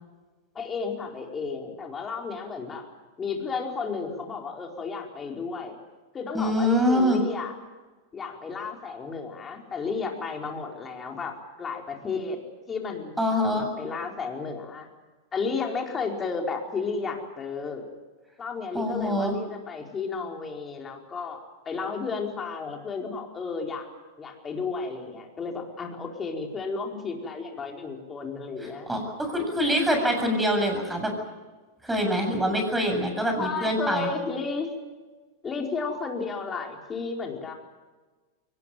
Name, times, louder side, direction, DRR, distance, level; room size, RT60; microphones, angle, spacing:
voice 1, 0.5-2.9 3.2-5.8 6.1-7.5 8.1-12.4 12.7-13.2 13.4-14.9 15.3-17.8 18.4-23.9 24.2-28.9 33.4-34.7 35.4-37.5, left 4 dB, 20° left, 1 dB, 4.7 m, -33 dB
voice 2, 6.3-7.2 13.2-13.7 18.7-19.3 28.6-31.1 31.8-34.1, equal, 5° right, 3 dB, 7.4 m, -25 dB
22.5 x 19.5 x 9.3 m, 1.3 s
hypercardioid pair, 125°, 0 cm